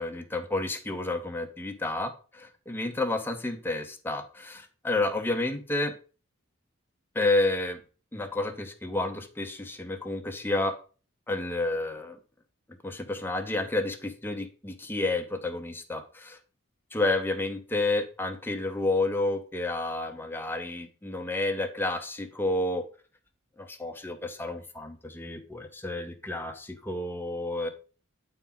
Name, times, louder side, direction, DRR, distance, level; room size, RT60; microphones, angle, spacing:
voice 1, 0.0-5.9 7.1-7.8 8.1-10.7 11.3-12.2 12.8-16.4 16.9-22.8 23.6-27.7, left 2 dB, 10° left, 5 dB, 0.7 m, -30 dB
8.1 x 4.4 x 3.8 m, 0.37 s
head